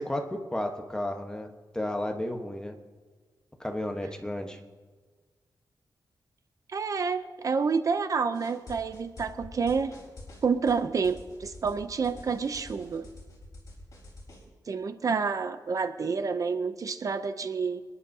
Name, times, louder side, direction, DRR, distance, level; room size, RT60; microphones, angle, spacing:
voice 1, 0.0-2.8 3.6-4.6, left 1 dB, 10° left, 3 dB, 1.1 m, -33 dB
voice 2, 6.7-10.0 10.4-13.1 14.7-17.8, right 5 dB, 45° right, 9 dB, 0.6 m, -29 dB
sound 1, 8.3-14.4, left 2 dB, 50° left, 4.1 m, -47 dB
26.5 x 10.5 x 2.8 m, 1.4 s
wide cardioid pair, 155°, 8 cm